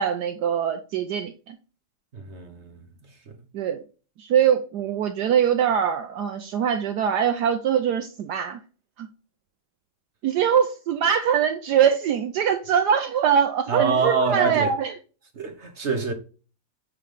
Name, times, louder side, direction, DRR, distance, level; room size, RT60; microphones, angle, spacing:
voice 1, 0.0-1.6 3.5-3.8 4.2-8.6 9.0-9.1 10.2-14.9, right 8 dB, 70° right, 1.2 m, -23 dB
voice 2, 2.1-2.8 3.3-3.4 13.7-14.7 15.3-16.1, right 4 dB, 45° right, 1.3 m, -25 dB
9.1 x 3.8 x 3.4 m
omnidirectional pair, 1.9 m